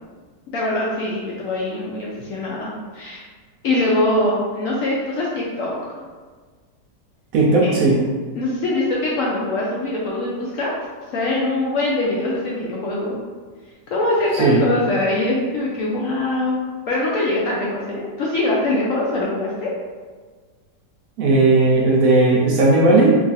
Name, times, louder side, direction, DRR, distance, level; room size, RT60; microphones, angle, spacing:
voice 1, 0.5-3.2 3.6-5.8 7.5-7.8 8.3-10.7 11.1-13.1 13.9-19.7, left 2 dB, 70° left, -4 dB, 0.8 m, -23 dB
voice 2, 7.3-8.0 14.4-14.6 21.2-23.2, right 2 dB, 70° right, -3 dB, 0.9 m, -15 dB
3.0 x 2.4 x 4.0 m, 1.5 s
omnidirectional pair, 1.8 m